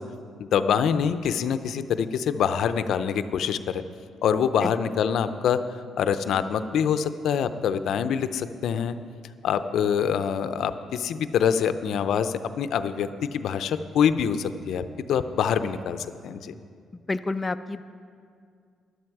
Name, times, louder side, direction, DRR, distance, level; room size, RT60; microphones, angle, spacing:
voice 1, 0.4-3.8 4.2-5.6 6.0-8.9 9.4-16.5, left 7 dB, 75° left, 11 dB, 0.5 m, -25 dB
voice 2, 16.9-17.8, left 3 dB, 25° left, 9 dB, 0.3 m, -29 dB
13.0 x 11.5 x 4.7 m, 2.2 s
cardioid pair, 90°, 0 cm